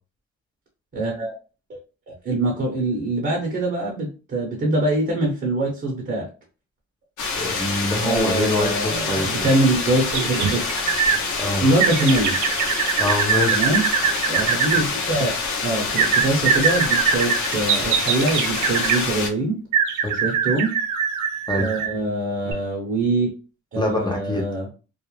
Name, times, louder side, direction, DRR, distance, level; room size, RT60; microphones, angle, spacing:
voice 1, 0.9-1.3 1.7-1.8 2.2-6.3 8.0-10.6 11.6-12.4 13.5-13.8 14.3-19.6 20.2-20.7 21.6-23.3 23.7-24.7, right 2 dB, 35° right, -1 dB, 0.9 m, -23 dB
sound 1, 7.2-19.3, left 4 dB, 75° left, 0.7 m, -26 dB
voice 2, 7.4-9.5 11.4-11.6 13.0-13.7 20.0-20.2 21.5-21.7 23.8-24.4, left 1 dB, 15° left, 0 dB, 0.6 m, -24 dB
sound 2, 10.1-11.2 11.8-14.8 16.0-19.1 19.7-22.0 22.5-22.6, right 7 dB, 75° right, 0.5 m, -22 dB
2.4 x 2.0 x 3.1 m, 0.34 s
cardioid pair, 90°, 30 cm